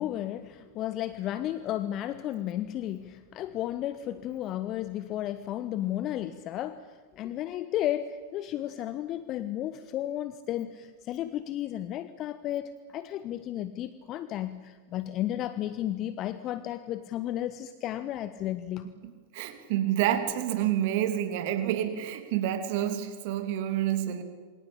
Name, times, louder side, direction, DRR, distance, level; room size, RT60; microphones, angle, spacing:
voice 1, 0.0-18.9, left 12 dB, 35° left, 13 dB, 1.2 m, -33 dB
voice 2, 19.3-24.2, right 11 dB, 50° right, 9 dB, 2.9 m, -28 dB
27.5 x 25.0 x 8.6 m, 1.6 s
figure-of-eight pair, 90°, 0 cm